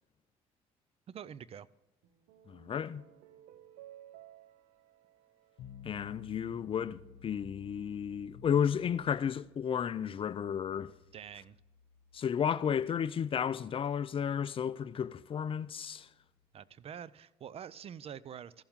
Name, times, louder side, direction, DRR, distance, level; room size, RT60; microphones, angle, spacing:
voice 1, 1.1-1.7 11.1-11.6 16.5-18.6, right 8 dB, 45° right, 0.4 m, -46 dB
sound 1, 2.0-6.6, right 12 dB, 85° right, 0.7 m, -57 dB
voice 2, 2.5-3.0 5.8-10.9 12.1-16.1, left 8 dB, 40° left, 0.5 m, -33 dB
sound 2, 5.6-16.7, left 6 dB, 70° left, 0.8 m, -56 dB
14.5 x 7.0 x 3.6 m
supercardioid pair, 80°, 14 cm